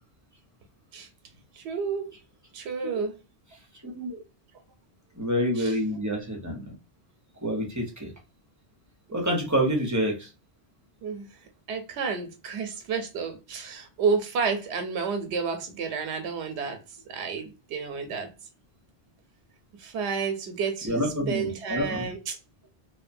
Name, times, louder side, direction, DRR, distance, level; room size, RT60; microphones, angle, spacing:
voice 1, 1.5-2.2 2.5-3.2 5.6-5.7 11.0-11.4 11.7-18.3 19.8-22.4, right 5 dB, 90° right, 0.9 m, -30 dB
voice 2, 3.8-4.2 5.2-6.6 7.4-8.1 9.1-10.3 20.8-22.1, equal, 20° right, 0.7 m, -27 dB
2.8 x 2.1 x 2.5 m
omnidirectional pair, 1.1 m